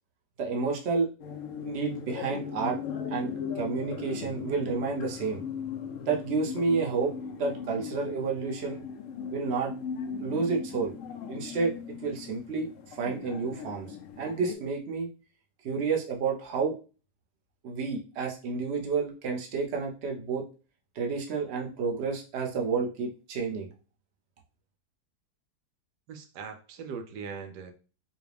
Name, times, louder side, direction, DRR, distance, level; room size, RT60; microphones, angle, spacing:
voice 1, 0.4-1.1 1.6-2.8 3.1-5.4 6.1-8.8 9.3-9.7 10.2-10.9 11.3-11.7 12.0-13.9 14.2-15.1 15.6-16.8 17.6-20.4 20.9-23.7, right 4 dB, 50° right, 0 dB, 1.0 m, -30 dB
sound 1, 1.2-14.5, left 7 dB, 65° left, 0.8 m, -38 dB
voice 2, 26.1-27.7, right 5 dB, 85° right, 7 dB, 1.2 m, -40 dB
4.8 x 2.4 x 3.3 m, 0.34 s
omnidirectional pair, 1.7 m